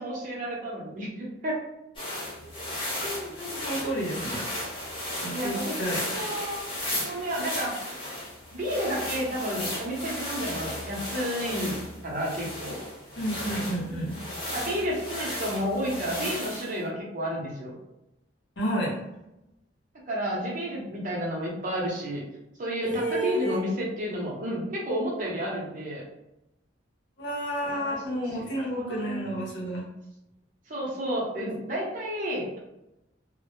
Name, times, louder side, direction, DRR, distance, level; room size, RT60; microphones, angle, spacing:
voice 1, 0.0-1.6 5.3-6.6 7.1-7.9 8.5-11.8 12.0-12.8 14.5-17.8 20.1-22.2 22.6-26.0 27.6-29.4 30.7-32.6, equal, 45° right, -4 dB, 0.7 m, -31 dB
sound 1, 2.0-16.8, left 1 dB, 25° left, 0.7 m, -35 dB
voice 2, 3.0-4.4 5.2-6.0 13.2-14.2 18.6-19.0 22.8-23.6 27.2-29.9, equal, 65° left, -3 dB, 0.8 m, -31 dB
2.1 x 2.0 x 2.9 m, 0.91 s
head